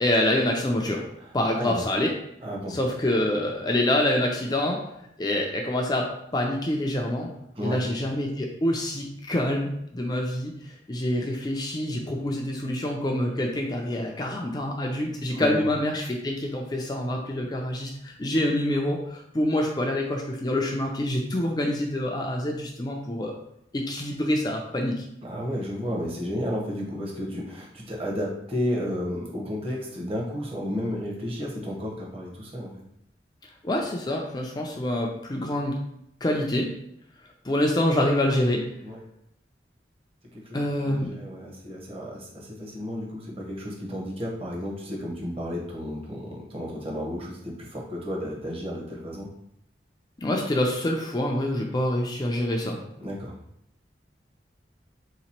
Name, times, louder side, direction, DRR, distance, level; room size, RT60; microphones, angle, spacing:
voice 1, 0.0-1.1 1.3-2.1 2.7-4.8 5.2-7.3 7.6-23.3 23.7-25.1 33.6-35.8 36.2-36.7 37.4-38.6 40.5-41.1 50.2-52.8, left 1 dB, 25° left, 0 dB, 0.4 m, -26 dB
voice 2, 2.4-2.8 7.5-7.8 15.3-15.6 25.2-32.7 38.8-39.0 40.3-49.3 53.0-53.3, equal, 30° right, -3 dB, 0.9 m, -32 dB
3.3 x 2.9 x 4.3 m, 0.76 s
head